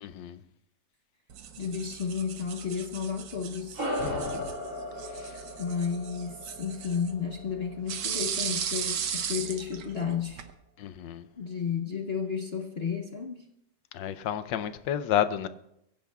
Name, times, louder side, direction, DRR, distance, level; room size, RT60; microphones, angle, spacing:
voice 1, 0.0-0.4 4.0-4.4 10.8-11.3 13.9-15.5, left 10 dB, 80° left, 1.4 m, -30 dB
sound 1, 1.3-10.5, right 8 dB, 70° right, 1.5 m, -37 dB
voice 2, 1.6-3.8 5.6-10.4 11.4-13.5, left 6 dB, 45° left, 0.9 m, -32 dB
sound 2, 3.7-8.5, left 1 dB, 45° right, 7.0 m, -37 dB
24.0 x 16.0 x 2.4 m
omnidirectional pair, 2.0 m